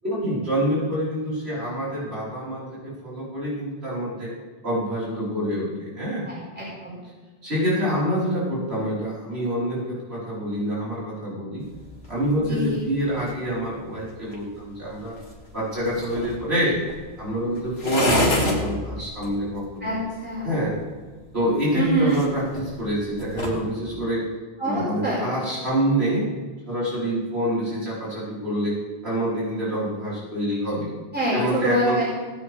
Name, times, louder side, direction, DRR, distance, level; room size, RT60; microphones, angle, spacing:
voice 1, 0.0-4.3 4.6-6.3 7.4-11.6 12.1-15.1 15.5-16.8 17.2-20.0 20.4-20.7 21.3-24.2 24.6-26.3 26.7-28.8 29.0-30.9 31.3-32.0, equal, 75° right, -9 dB, 5.0 m, -26 dB
voice 2, 6.2-7.0 12.4-12.8 19.8-19.9 20.2-20.5 21.7-22.2 24.6-25.3 31.1-32.0, right 2 dB, 10° right, -8 dB, 4.8 m, -25 dB
sound 1, 11.6-23.7, left 1 dB, 75° left, 2.4 m, -32 dB
18.0 x 9.6 x 3.5 m, 1.4 s
omnidirectional pair, 1.1 m